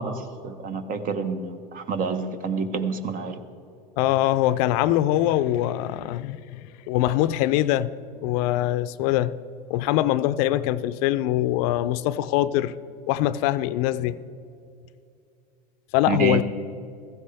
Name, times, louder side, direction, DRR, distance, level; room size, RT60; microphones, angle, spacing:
voice 1, 0.0-3.4 16.1-16.4, right 4 dB, 45° right, 8 dB, 1.2 m, -28 dB
voice 2, 4.0-9.3 9.7-12.8 13.1-14.2 15.9-16.4, left 14 dB, 70° left, 14 dB, 0.5 m, -23 dB
15.5 x 14.0 x 3.5 m, 2.5 s
supercardioid pair, 105°, 20 cm